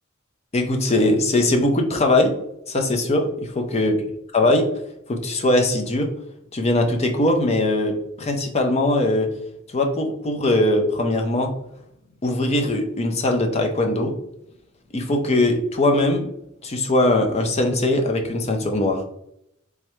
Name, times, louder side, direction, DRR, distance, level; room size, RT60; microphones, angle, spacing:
voice 1, 0.5-2.3 2.7-3.9 4.3-4.7 5.1-6.1 6.5-9.3 9.7-11.5 12.2-14.1 14.9-16.3 16.6-19.0, left 1 dB, 30° left, 3 dB, 0.6 m, -20 dB
3.5 x 3.1 x 3.2 m, 0.78 s
head